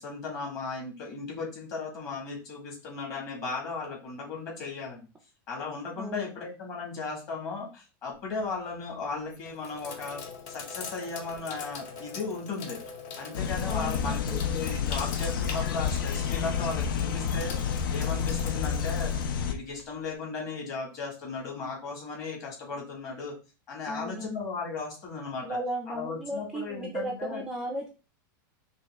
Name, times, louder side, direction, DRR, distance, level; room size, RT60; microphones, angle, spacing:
voice 1, 0.0-5.1 5.5-10.2 10.5-12.8 13.2-23.3 23.7-25.6 25.9-27.4, left 4 dB, 30° left, -2 dB, 1.7 m, -36 dB
Sink (filling or washing), 8.1-8.6 9.2-20.1, left 5 dB, 45° left, 0.9 m, -43 dB
sound 1, 13.3-19.5, left 7 dB, 85° left, 0.6 m, -29 dB
voice 2, 13.7-14.4 23.9-24.3 25.4-27.9, right 1 dB, 5° right, 1 dB, 0.4 m, -35 dB
5.3 x 2.4 x 3.5 m, 0.33 s
supercardioid pair, 175°, 11 cm